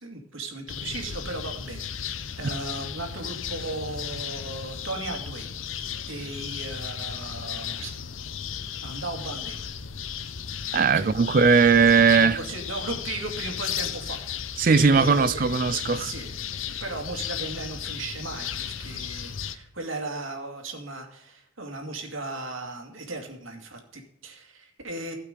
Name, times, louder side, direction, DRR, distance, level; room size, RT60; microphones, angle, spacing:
voice 1, 0.0-5.5 6.1-7.9 8.8-9.6 10.9-11.1 12.2-14.2 14.9-25.1, right 2 dB, 85° right, 2.3 m, -36 dB
sound 1, 0.7-19.5, left 8 dB, 80° left, 0.7 m, -35 dB
voice 2, 10.7-12.4 14.6-16.1, right 5 dB, 45° right, 0.4 m, -19 dB
16.0 x 5.8 x 5.1 m
head